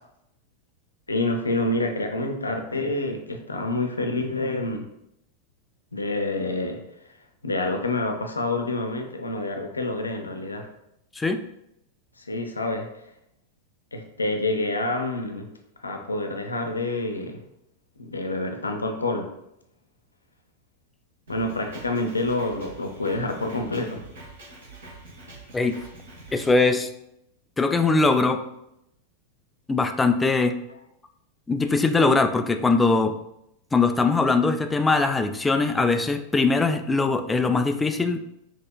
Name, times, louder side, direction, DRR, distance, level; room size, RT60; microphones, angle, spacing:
voice 1, 1.1-4.9 5.9-6.8 7.4-10.7 12.2-12.9 13.9-15.5 15.8-17.4 18.0-19.3 21.3-24.0, left 2 dB, 80° left, 4 dB, 0.5 m, -27 dB
Drum kit, 21.3-26.6, right 3 dB, 65° right, 1.4 m, -45 dB
voice 2, 26.3-26.9 27.6-28.4 29.7-30.5 31.5-33.1 33.7-38.2, left 3 dB, 10° left, 7 dB, 0.3 m, -21 dB
5.3 x 2.8 x 2.2 m, 0.80 s
figure-of-eight pair, 90°, 0 cm